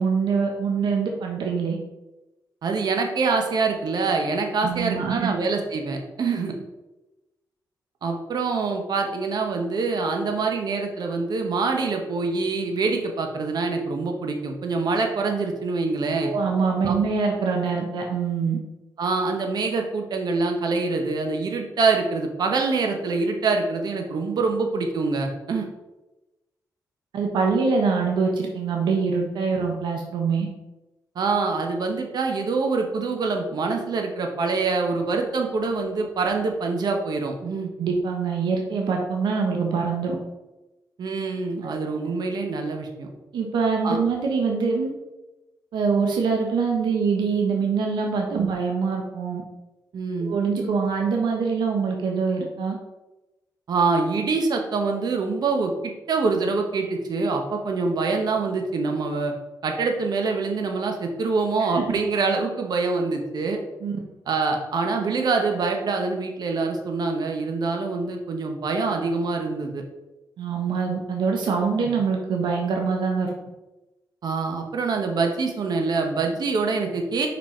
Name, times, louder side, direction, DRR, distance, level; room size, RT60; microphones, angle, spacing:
voice 1, 0.0-1.8 4.6-5.3 16.2-18.6 27.1-30.5 37.8-40.2 41.6-41.7 43.3-44.9 45.7-49.4 50.2-52.8 61.6-62.0 63.8-63.9 70.4-73.3, right 5 dB, 90° right, 1 dB, 1.0 m, -24 dB
voice 2, 2.6-6.5 8.0-16.3 16.8-17.0 19.0-25.6 31.1-37.7 41.0-43.1 43.8-44.0 48.3-48.5 49.9-50.4 53.7-55.7 56.1-59.3 59.6-63.6 64.3-69.8 71.8-71.9 74.2-77.3, right 4 dB, 65° right, 3 dB, 1.2 m, -25 dB
5.5 x 5.2 x 4.5 m, 1.0 s
cardioid pair, 95°, 7 cm